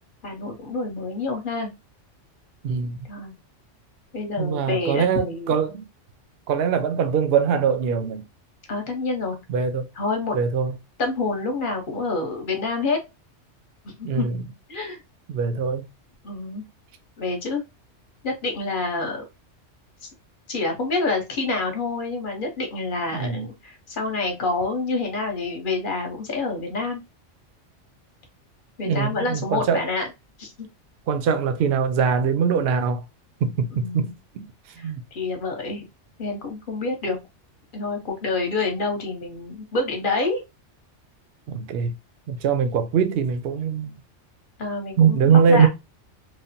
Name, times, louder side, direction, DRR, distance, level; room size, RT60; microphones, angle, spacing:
voice 1, 0.2-1.7 3.1-3.3 4.1-5.6 8.7-9.4 10.0-10.4 11.0-13.0 13.8-14.3 14.7-15.0 16.2-16.6 17.2-17.6 18.2-19.2 20.5-27.0 28.8-30.1 30.4-30.5 33.7-34.1 34.8-35.8 36.2-37.2 37.7-40.4 44.6-45.7, left 3 dB, 45° left, 0.9 m, -27 dB
voice 2, 2.6-3.0 4.4-5.9 6.5-8.2 9.5-9.9 10.3-10.7 14.0-14.4 15.3-15.9 23.1-23.5 28.9-29.9 31.1-33.0 33.4-34.4 34.8-35.0 41.5-41.9 42.3-44.0 45.0-45.7, right 6 dB, 60° right, 0.7 m, -22 dB
3.1 x 2.0 x 2.6 m
omnidirectional pair, 1.3 m